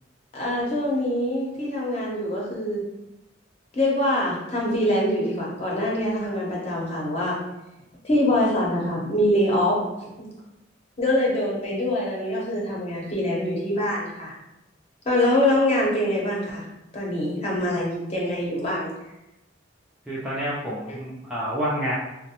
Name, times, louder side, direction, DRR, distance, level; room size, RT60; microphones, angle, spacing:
voice 1, 0.3-2.8 3.7-7.4 8.0-9.8 11.0-14.3 15.0-16.7 16.9-18.9, left 1 dB, 35° left, -4 dB, 0.8 m, -24 dB
voice 2, 20.1-21.9, equal, 5° right, -8 dB, 0.4 m, -28 dB
3.0 x 2.1 x 2.8 m, 0.95 s
head